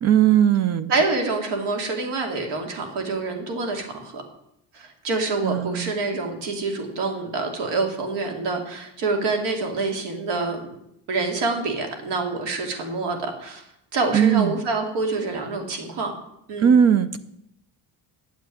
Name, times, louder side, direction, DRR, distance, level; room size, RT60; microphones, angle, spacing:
voice 1, 0.0-0.9 5.4-5.9 14.1-14.6 16.6-17.2, right 9 dB, 40° right, 14 dB, 0.4 m, -18 dB
voice 2, 0.9-4.2 4.7-10.6 11.1-13.6 13.9-16.1 16.5-16.8, right 3 dB, 70° right, 3 dB, 2.8 m, -26 dB
9.2 x 7.8 x 9.3 m, 0.79 s
cardioid pair, 180°, 44 cm